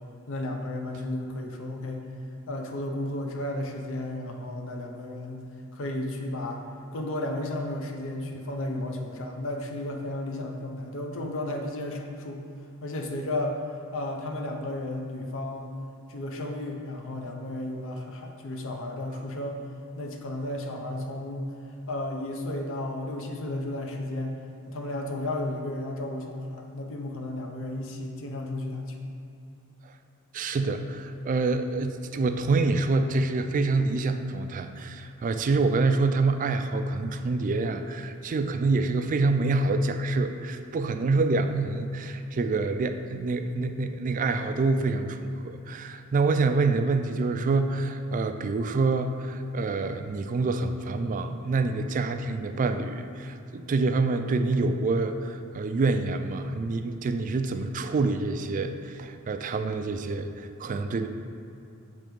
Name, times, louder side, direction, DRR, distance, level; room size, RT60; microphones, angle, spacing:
voice 1, 0.3-2.1 2.5-6.6 6.9-12.4 12.8-13.6 13.9-15.8 16.1-19.6 20.0-21.5 21.9-29.1, left 1 dB, 65° left, 2 dB, 0.6 m, -33 dB
voice 2, 30.3-61.1, right 3 dB, 35° right, 8 dB, 0.3 m, -26 dB
6.3 x 3.3 x 5.2 m, 2.6 s
head